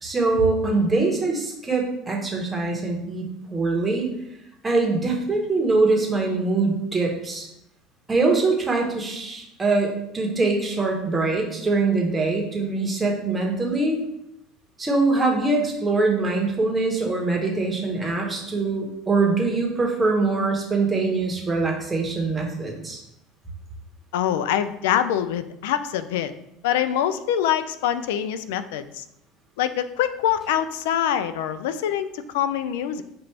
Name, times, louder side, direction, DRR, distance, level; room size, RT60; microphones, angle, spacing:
voice 1, 0.0-4.1 4.6-7.5 8.1-14.0 14.8-23.0, right 3 dB, 15° right, 0 dB, 1.0 m, -23 dB
voice 2, 24.1-26.3 26.6-29.0 29.6-32.1 32.3-33.0, left 10 dB, 85° left, 12 dB, 0.3 m, -24 dB
5.8 x 2.5 x 3.2 m, 0.82 s
supercardioid pair, 115°, 0 cm